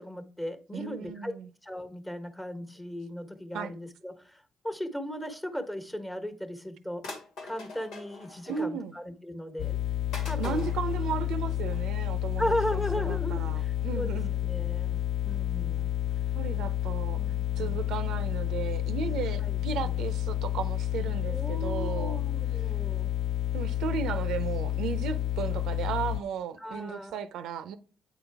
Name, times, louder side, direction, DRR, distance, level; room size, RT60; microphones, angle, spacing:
voice 1, 0.0-1.3 1.6-7.0 7.4-9.8 10.3-10.8 12.4-15.9 17.1-17.8 19.0-19.9 21.3-23.1 26.5-27.2, equal, 10° left, 1.3 m, -37 dB
voice 2, 0.7-1.5 3.5-3.7 8.5-9.0 10.4-14.3 16.3-17.2 17.6-22.2 23.5-27.8, right 7 dB, 85° right, 0.6 m, -35 dB
sound 1, 6.2-6.3 7.0-9.0 9.4-9.5 10.1-11.9 12.4-12.6 13.0-13.2 13.7-13.9 14.1-14.3 14.9-15.4 15.8-16.1 16.5-16.9 17.3-17.4 17.6-17.7 18.0-18.1 18.3-18.4 18.7-18.8 19.0-19.1, left 3 dB, 85° left, 2.3 m, -46 dB
sound 2, 9.6-26.2, left 12 dB, 60° left, 0.3 m, -30 dB
8.6 x 4.0 x 3.4 m
cardioid pair, 90°, 0 cm